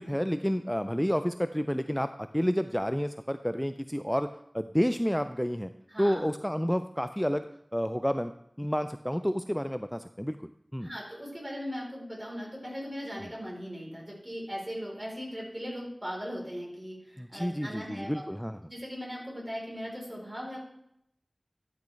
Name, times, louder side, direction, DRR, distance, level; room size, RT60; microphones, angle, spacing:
voice 1, 0.0-4.3 4.5-5.7 6.0-7.5 7.7-8.3 8.6-10.9 13.2-13.3 17.2-18.6, equal, 5° left, 10 dB, 0.3 m, -30 dB
voice 2, 5.9-6.2 10.8-18.2 18.7-20.6, equal, 35° right, -3 dB, 3.7 m, -39 dB
11.5 x 6.3 x 3.2 m, 0.76 s
wide cardioid pair, 45°, 0 cm